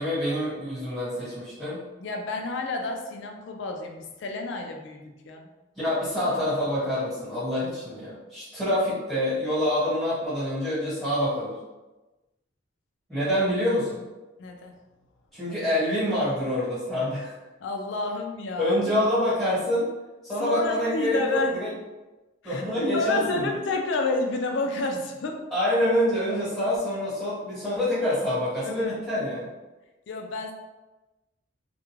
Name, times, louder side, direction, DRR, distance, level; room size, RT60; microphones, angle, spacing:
voice 1, 0.0-1.8 5.7-11.6 13.1-14.0 15.3-17.3 18.6-19.9 20.2-21.7 22.4-23.5 25.5-29.5, left 1 dB, ahead, -11 dB, 1.3 m, -26 dB
voice 2, 2.0-5.5 14.4-14.7 17.6-19.1 20.4-21.6 22.4-22.6 22.9-25.3 26.3-26.4 28.6-29.0 30.1-30.5, left 2 dB, 60° left, 3 dB, 0.4 m, -30 dB
2.4 x 2.1 x 3.0 m, 1.1 s
head